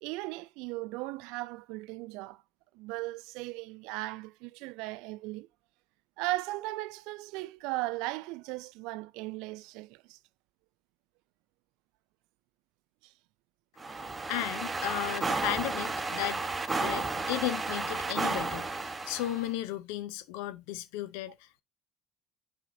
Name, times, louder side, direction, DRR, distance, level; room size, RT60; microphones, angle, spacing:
voice 1, 0.0-2.4 2.7-5.5 6.2-10.2 13.0-13.1, right 20 dB, 70° right, 0.3 m, -37 dB
sound 1, 13.8-19.5, right 3 dB, 20° right, 1.1 m, -33 dB
voice 2, 14.3-16.4 16.8-21.3, left 14 dB, 75° left, 0.6 m, -35 dB
9.9 x 4.4 x 2.7 m
hypercardioid pair, 70°, 0 cm